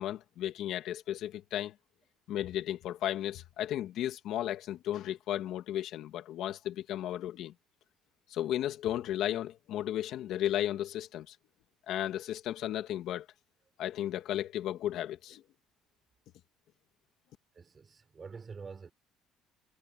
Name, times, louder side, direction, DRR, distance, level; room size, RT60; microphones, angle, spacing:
voice 1, 0.0-1.7 2.3-7.5 8.3-11.4 11.9-13.3 13.8-15.4, left 12 dB, 60° left, 2.1 m, -34 dB
voice 2, 17.6-18.9, right 5 dB, 25° right, 5.4 m, -46 dB
cardioid pair, 145°, 0 cm